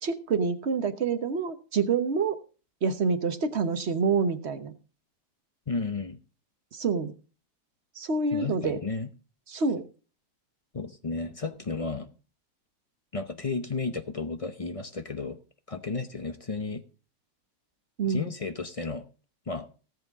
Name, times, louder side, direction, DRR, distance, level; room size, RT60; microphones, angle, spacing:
voice 1, 0.0-2.4 2.8-4.7 6.7-7.1 8.0-8.8 9.5-9.8 18.0-18.3, right 4 dB, 45° right, 9 dB, 1.2 m, -27 dB
voice 2, 5.7-6.2 8.3-9.1 10.7-12.1 13.1-15.4 15.7-16.8 18.0-19.0 19.5-19.7, left 4 dB, 35° left, 9 dB, 0.6 m, -33 dB
18.5 x 7.7 x 3.7 m, 0.36 s
omnidirectional pair, 1.8 m